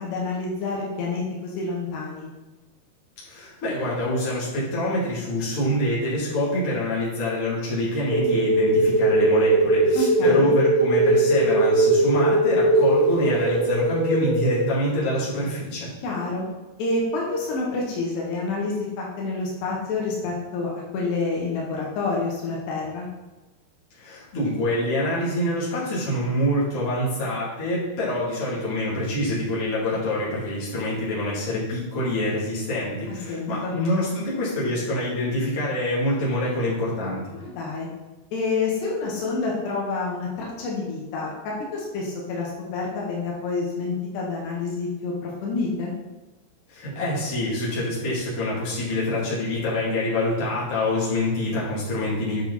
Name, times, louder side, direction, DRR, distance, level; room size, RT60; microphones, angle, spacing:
voice 1, 0.0-2.3 10.0-10.5 16.0-16.4 16.8-23.1 33.3-33.7 37.3-37.9 38.3-45.9, left 3 dB, 80° left, -3 dB, 3.7 m, -28 dB
voice 2, 3.3-15.9 23.9-37.2 46.7-52.4, left 1 dB, 35° left, -8 dB, 3.6 m, -26 dB
sound 1, 8.1-14.5, right 2 dB, 45° right, 4.0 m, -20 dB
9.8 x 6.3 x 4.3 m, 1.1 s
omnidirectional pair, 4.8 m